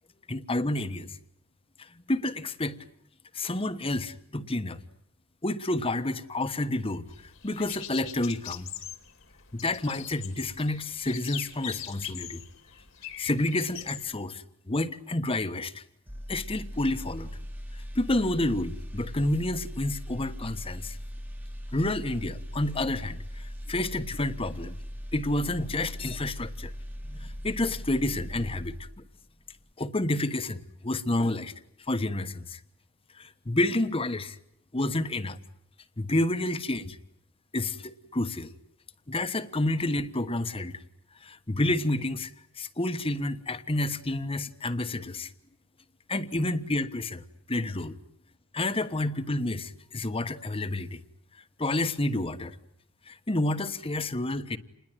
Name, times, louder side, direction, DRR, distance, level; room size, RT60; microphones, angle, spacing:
voice 1, 0.3-1.2 1.8-2.8 3.3-4.8 5.4-7.1 7.4-8.7 9.5-12.4 13.2-15.8 16.3-17.3 17.9-21.0 21.7-24.8 25.1-26.7 27.1-28.8 29.8-31.5 31.9-32.6 33.2-34.4 34.7-35.4 36.0-37.0 37.5-38.5 39.1-40.7 41.2-42.3 42.6-45.3 46.1-47.2 47.5-48.0 48.5-51.0 51.6-52.5 53.1-54.6, left 1 dB, 25° left, 1.2 m, -29 dB
sound 1, 7.1-14.1, left 10 dB, 65° left, 2.5 m, -42 dB
sound 2, 16.1-29.2 29.5-29.7, equal, 10° right, 1.4 m, -39 dB
28.5 x 21.0 x 9.1 m
head